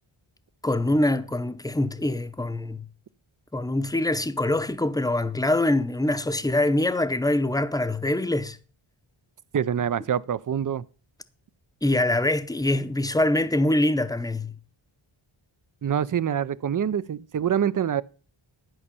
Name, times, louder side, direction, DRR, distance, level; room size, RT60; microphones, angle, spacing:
voice 1, 0.6-2.8 3.5-8.6 11.8-14.5, left 1 dB, 5° left, 0.8 m, -24 dB
voice 2, 9.5-10.8 15.8-18.0, right 8 dB, 40° right, 0.5 m, -25 dB
11.5 x 5.4 x 6.8 m
wide cardioid pair, 100°, 50 cm